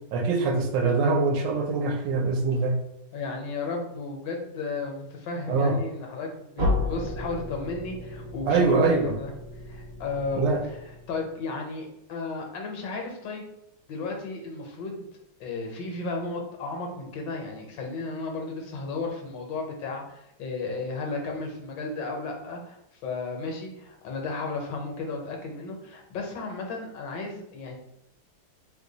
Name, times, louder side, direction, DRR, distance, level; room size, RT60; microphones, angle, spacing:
voice 1, 0.1-2.8 5.5-5.8 8.5-9.1 10.3-10.6, right 4 dB, 80° right, 3 dB, 1.2 m, -23 dB
voice 2, 3.1-9.3 9.6-10.8 11.1-13.4 13.9-15.1 15.4-27.8, left 3 dB, 75° left, 2 dB, 1.4 m, -34 dB
sound 1, 6.6-11.4, left 2 dB, 50° right, 0.8 m, -33 dB
3.2 x 2.2 x 3.8 m, 0.84 s
omnidirectional pair, 2.0 m